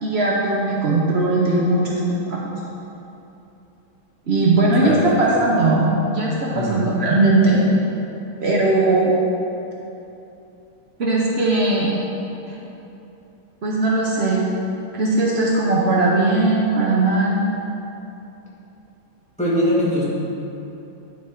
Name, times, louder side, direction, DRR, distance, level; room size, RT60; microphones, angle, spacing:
voice 1, 0.0-2.0 2.3-2.4 4.3-7.6 8.4-9.1 11.0-11.9 12.5-12.6 13.6-14.4 14.9-17.4, right 2 dB, 90° right, -4 dB, 0.5 m, -19 dB
voice 2, 4.8-5.4 6.5-7.0 19.4-20.0, equal, 5° left, -9 dB, 1.6 m, -22 dB
10.5 x 4.3 x 4.6 m, 2.9 s
omnidirectional pair, 2.3 m